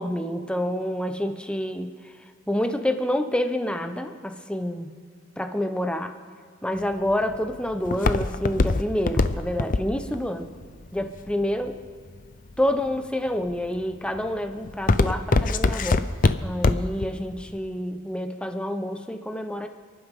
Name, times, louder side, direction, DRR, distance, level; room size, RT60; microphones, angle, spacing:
voice 1, 0.0-1.9 2.5-4.9 5.4-6.1 6.6-10.5 10.9-11.8 12.6-16.0 16.4-19.7, left 1 dB, 5° left, 6 dB, 0.8 m, -28 dB
Walk footsteps, 6.8-11.9 12.5-13.0 13.5-13.8 14.2-17.0 17.4-17.5, left 3 dB, 45° left, 0.6 m, -22 dB
29.5 x 11.5 x 3.7 m, 2.1 s
head